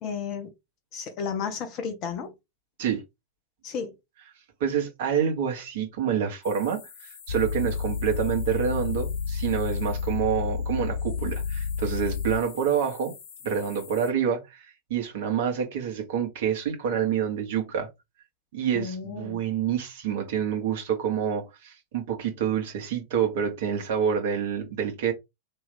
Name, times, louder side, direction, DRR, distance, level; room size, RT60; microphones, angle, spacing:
voice 1, 0.0-0.5 0.9-2.3 3.6-3.9 18.7-19.4, left 6 dB, 40° left, 1.4 m, -33 dB
voice 2, 4.6-13.1 13.4-17.9 18.5-25.1, right 8 dB, 55° right, 1.5 m, -27 dB
sound 1, 6.4-14.1, left 7 dB, 55° left, 1.0 m, -48 dB
sound 2, 7.3-12.4, left 6 dB, 70° left, 0.4 m, -30 dB
4.4 x 3.1 x 3.6 m
figure-of-eight pair, 90°, 0 cm